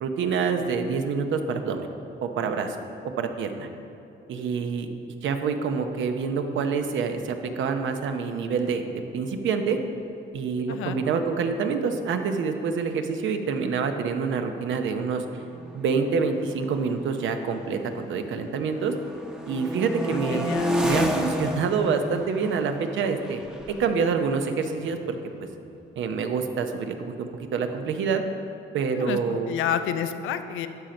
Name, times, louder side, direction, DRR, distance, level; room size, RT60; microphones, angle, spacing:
voice 1, 0.0-1.8 2.2-2.8 3.2-3.7 4.3-4.9 5.2-8.8 9.1-9.8 10.3-15.2 15.7-18.9 19.5-20.5 20.8-23.4 23.7-25.5 26.0-28.2 28.7-29.5, right 5 dB, 75° right, 6 dB, 0.8 m, -27 dB
voice 2, 10.7-11.0 20.1-20.8 28.9-30.7, left 9 dB, 85° left, 10 dB, 0.5 m, -30 dB
sound 1, 12.8-12.9 13.2-13.5 14.3-18.2 18.5-25.2, equal, 5° right, 0.8 m, -32 dB
12.5 x 4.4 x 5.2 m, 2.8 s
cardioid pair, 90°, 20 cm